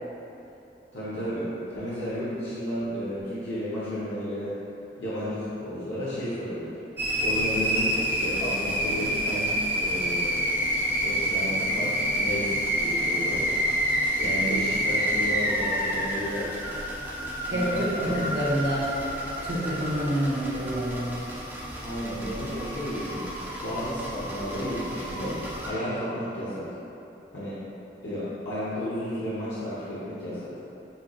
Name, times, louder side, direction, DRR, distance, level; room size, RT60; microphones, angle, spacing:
voice 1, 0.9-4.6 5.0-6.8 7.2-10.4 11.0-13.5 14.2-16.5 17.4-18.4 21.8-23.2 23.6-26.7 27.3-27.6 28.0-30.5, equal, 90° left, -10 dB, 0.9 m, -32 dB
sound 1, 7.0-25.7, equal, 10° right, 0.4 m, -28 dB
voice 2, 17.5-18.9 19.4-21.2, equal, 75° right, -9 dB, 1.0 m, -28 dB
6.7 x 3.1 x 2.3 m, 2.9 s
head